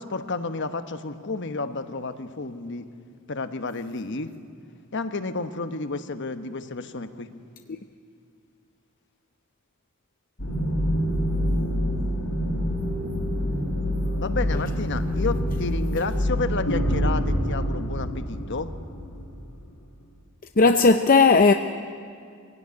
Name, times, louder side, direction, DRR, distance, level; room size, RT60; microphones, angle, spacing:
voice 1, 0.0-2.9 3.3-4.3 4.9-7.3 14.1-18.7, left 3 dB, 55° left, 1.1 m, -31 dB
sound 1, 10.4-19.7, equal, 75° left, 5.4 m, -26 dB
voice 2, 20.6-21.5, left 4 dB, 40° left, 0.6 m, -16 dB
24.5 x 16.5 x 9.8 m
head